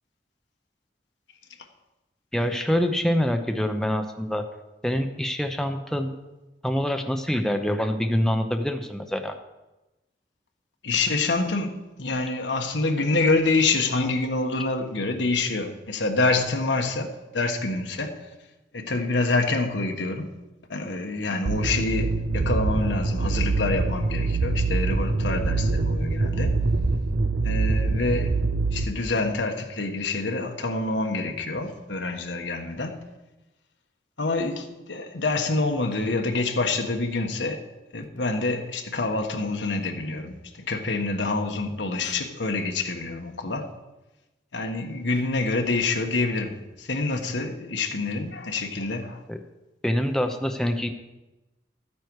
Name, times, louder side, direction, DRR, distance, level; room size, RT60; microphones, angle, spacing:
voice 1, 2.3-4.4 4.8-6.1 6.6-9.4 49.3-49.4 49.8-50.9, equal, 5° left, 5 dB, 0.7 m, -25 dB
voice 2, 10.8-18.2 18.7-20.3 20.7-26.6 27.4-28.3 28.7-33.0 34.2-37.6 37.9-43.7 44.5-49.2, left 3 dB, 85° left, 4 dB, 1.4 m, -27 dB
sound 1, 21.5-28.8, right 3 dB, 85° right, 0.7 m, -24 dB
13.5 x 9.2 x 4.7 m, 1.0 s
head